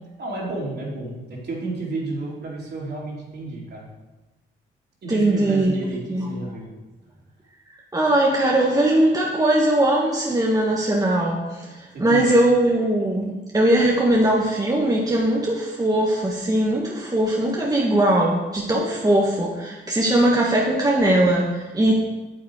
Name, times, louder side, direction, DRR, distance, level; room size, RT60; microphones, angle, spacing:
voice 1, 0.2-3.9 5.0-6.7 11.9-12.4, right 2 dB, 50° right, -4 dB, 3.4 m, -32 dB
voice 2, 5.1-5.8 6.1-6.3 7.9-21.9, right 1 dB, 15° right, -2 dB, 1.5 m, -20 dB
8.7 x 7.8 x 4.9 m, 1.1 s
cardioid pair, 85°, 21 cm